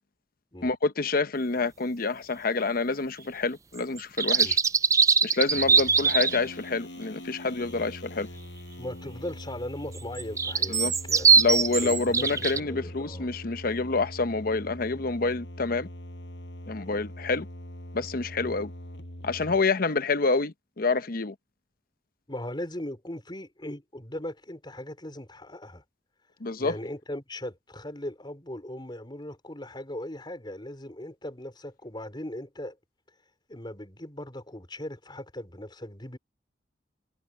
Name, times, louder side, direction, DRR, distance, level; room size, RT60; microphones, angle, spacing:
voice 1, 0.6-4.6 5.2-8.3 10.7-10.9 11.4-15.9 16.7-17.5 17.9-18.7 19.2-21.3 26.4-26.8, left 3 dB, 55° left, 0.9 m, -27 dB
sound 1, 4.0-6.4 10.0-12.6, right 5 dB, 20° right, 0.4 m, -22 dB
sound 2, 5.5-19.6, left 1 dB, 80° left, 6.9 m, -42 dB
voice 2, 8.8-13.3 16.8-17.0 18.4-18.5 22.3-25.8 26.6-32.8 33.5-36.2, left 1 dB, 25° left, 5.0 m, -39 dB
head